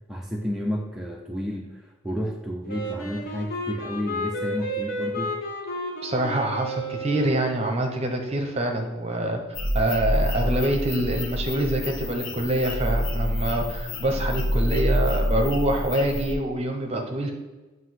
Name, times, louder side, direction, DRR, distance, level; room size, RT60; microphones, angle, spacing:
voice 1, 0.1-5.3, equal, ahead, -2 dB, 0.5 m, -31 dB
Wind instrument woodwind instrument, 2.7-7.7, equal, 45° left, 1.2 m, -32 dB
voice 2, 6.0-9.4 9.7-17.3, right 1 dB, 30° right, 3 dB, 0.9 m, -25 dB
sound 1, 9.5-16.3, equal, 80° left, 1.0 m, -27 dB
7.5 x 2.7 x 5.7 m, 1.2 s
head